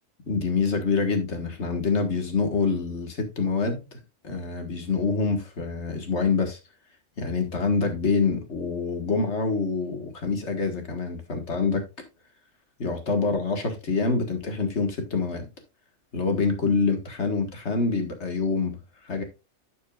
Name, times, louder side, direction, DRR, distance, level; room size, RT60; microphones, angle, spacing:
voice 1, 0.3-4.0 4.2-6.6 7.2-11.8 12.8-15.5 16.1-19.2, left 4 dB, 70° left, 5 dB, 1.9 m, -26 dB
11.5 x 6.6 x 2.4 m, 0.26 s
omnidirectional pair, 1.2 m